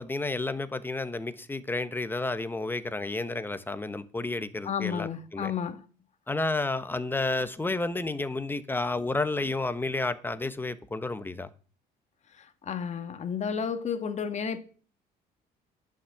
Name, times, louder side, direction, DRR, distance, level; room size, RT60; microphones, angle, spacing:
voice 1, 0.0-5.5 6.3-11.5, left 2 dB, 10° left, 1.1 m, -31 dB
voice 2, 4.6-5.8 12.4-14.6, left 7 dB, 40° left, 1.6 m, -32 dB
11.5 x 6.4 x 8.4 m
cardioid pair, 110°, 17 cm